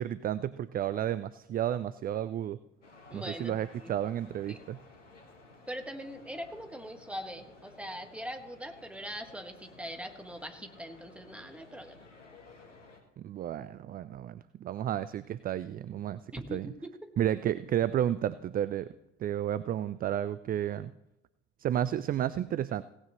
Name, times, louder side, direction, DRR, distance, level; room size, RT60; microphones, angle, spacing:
voice 1, 0.0-2.6 3.1-4.8 13.2-16.2 16.5-16.7 17.2-18.9 19.2-20.9 21.6-22.8, right 11 dB, 25° right, 16 dB, 0.4 m, -32 dB
sound 1, 2.8-13.0, left 3 dB, 85° left, 1.6 m, -55 dB
voice 2, 3.1-3.9 4.5-4.6 5.7-12.1 16.3-17.1, equal, 5° right, 5 dB, 1.7 m, -42 dB
17.5 x 9.7 x 3.2 m, 0.89 s
figure-of-eight pair, 60°, 36 cm